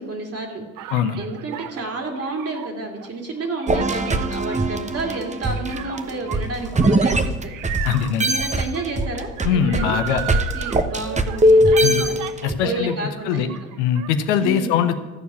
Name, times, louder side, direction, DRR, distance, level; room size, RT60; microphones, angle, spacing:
voice 1, 0.0-7.5 8.2-12.1 12.6-13.5 14.4-14.9, right 2 dB, 45° right, 2 dB, 2.9 m, -30 dB
sound 1, 0.8-13.0 13.3-14.1, right 12 dB, 65° right, 0.8 m, -35 dB
sound 2, 3.7-7.9 8.2-12.5, right 1 dB, 20° right, 1.0 m, -20 dB
voice 2, 7.8-8.3 9.4-10.2 11.8-12.0 12.4-12.9 13.2-13.5 13.8-14.9, left 8 dB, 85° left, 8 dB, 1.0 m, -21 dB
14.0 x 4.8 x 8.5 m, 1.1 s
supercardioid pair, 65°, 34 cm